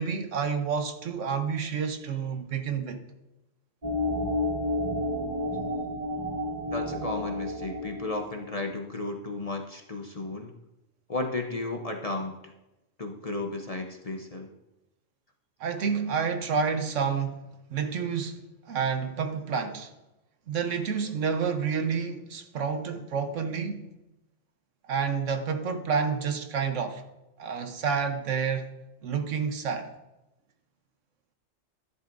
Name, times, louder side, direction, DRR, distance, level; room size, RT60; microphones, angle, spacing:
voice 1, 0.0-3.0 15.6-17.4 17.7-18.4 18.7-19.9 20.5-23.8 24.9-27.0 27.4-28.7 29.0-29.9, right 6 dB, 75° right, 1.2 m, -29 dB
sound 1, 3.8-8.6, left 1 dB, 35° right, 1.8 m, -31 dB
voice 2, 6.7-10.5 11.1-12.5 13.0-14.5, left 2 dB, 35° left, 0.7 m, -34 dB
13.5 x 11.0 x 2.6 m
omnidirectional pair, 1.3 m